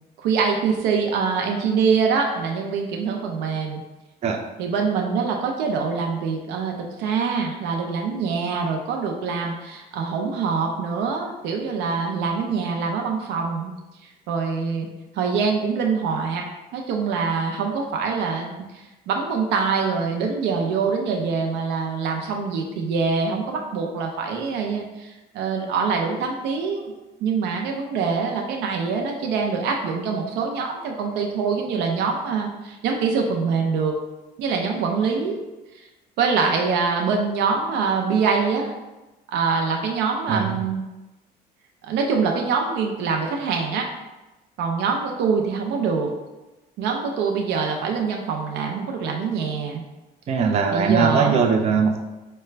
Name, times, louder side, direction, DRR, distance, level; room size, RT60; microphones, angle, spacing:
voice 1, 0.2-3.8 4.6-13.7 14.3-14.9 15.1-16.4 16.7-26.9 27.2-34.0 34.4-35.4 35.7-35.8 36.2-38.7 39.3-40.8 41.8-43.9 44.6-46.1 46.8-49.8 50.7-51.4, right 5 dB, 85° right, 2 dB, 0.5 m, -24 dB
voice 2, 50.3-52.0, right 5 dB, 40° right, 3 dB, 0.4 m, -20 dB
4.8 x 2.2 x 3.2 m, 1.0 s
cardioid pair, 110°, 17 cm